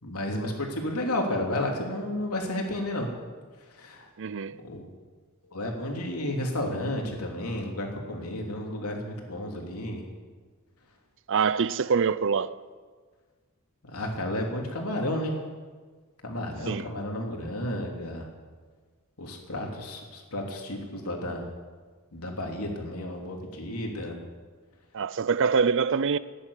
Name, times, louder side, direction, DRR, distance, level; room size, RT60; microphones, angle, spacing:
voice 1, 0.0-3.1 3.7-4.1 4.6-4.9 5.5-10.0 13.8-15.3 16.2-18.3 19.2-21.4 22.1-24.1, left 1 dB, 80° left, 3.2 m, -32 dB
voice 2, 4.2-4.6 11.3-12.6 16.7-16.8 24.9-26.2, right 5 dB, 60° right, 0.6 m, -25 dB
14.5 x 10.0 x 9.9 m
head